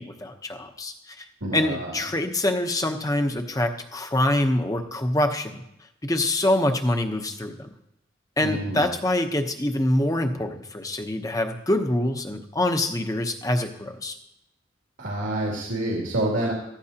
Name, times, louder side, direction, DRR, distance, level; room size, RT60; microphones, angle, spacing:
voice 1, 0.0-1.3 1.5-5.6 6.0-7.7 8.4-14.1, left 1 dB, 20° left, 5 dB, 0.9 m, -25 dB
voice 2, 1.4-1.9 8.4-8.9 15.0-16.5, right 1 dB, 90° right, -4 dB, 2.7 m, -27 dB
15.0 x 15.0 x 2.9 m, 0.82 s
head